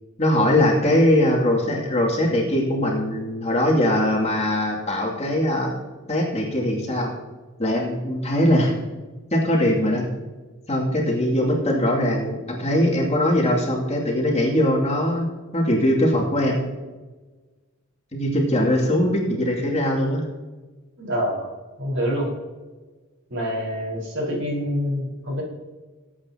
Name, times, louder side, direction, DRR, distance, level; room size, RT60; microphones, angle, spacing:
voice 1, 0.2-5.7 6.1-7.1 7.6-8.7 9.3-10.1 10.7-15.3 15.5-16.6 18.1-20.2, left 1 dB, 30° left, -2 dB, 2.6 m, -21 dB
voice 2, 21.0-21.5 21.8-22.3 23.3-25.4, equal, 60° right, -3 dB, 4.5 m, -26 dB
20.0 x 8.7 x 2.9 m, 1.3 s
head